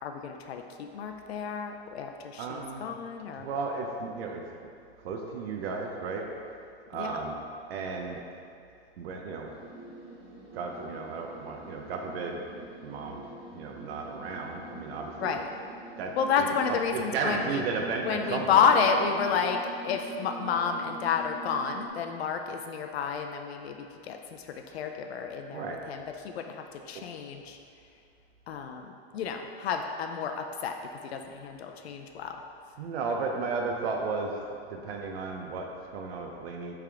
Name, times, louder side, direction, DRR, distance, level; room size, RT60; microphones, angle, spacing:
voice 1, 0.0-3.5 6.9-7.2 15.2-15.5 16.2-17.6 18.1-27.6 28.5-30.8 31.0-32.4, left 6 dB, 70° left, 5 dB, 0.5 m, -30 dB
voice 2, 2.4-2.9 3.4-4.4 5.0-6.3 6.9-7.4 7.7-8.2 9.0-9.5 10.5-13.2 13.5-15.4 16.0-16.5 16.9-18.7 25.5-25.8 26.9-27.0 32.8-34.4 34.7-36.7, right 4 dB, 65° right, 1 dB, 0.7 m, -34 dB
sound 1, 9.5-21.9, right 1 dB, 15° right, 1.0 m, -45 dB
8.2 x 3.6 x 3.5 m, 2.4 s
hypercardioid pair, 150°, 32 cm